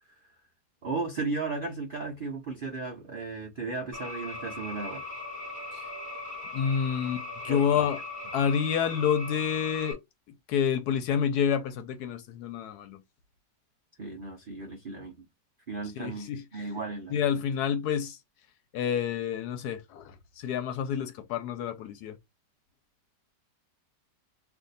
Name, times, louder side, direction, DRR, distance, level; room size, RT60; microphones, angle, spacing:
voice 1, 0.8-5.1 7.5-7.8 14.0-15.3 15.7-17.1, right 3 dB, 75° right, 0.4 m, -35 dB
sound 1, 3.9-9.9, left 2 dB, 15° right, 0.9 m, -39 dB
voice 2, 6.5-8.0 8.3-10.0 10.5-13.0 16.0-16.4 17.1-18.2 18.7-22.2, left 8 dB, 70° left, 1.0 m, -28 dB
2.6 x 2.5 x 3.9 m
omnidirectional pair, 1.9 m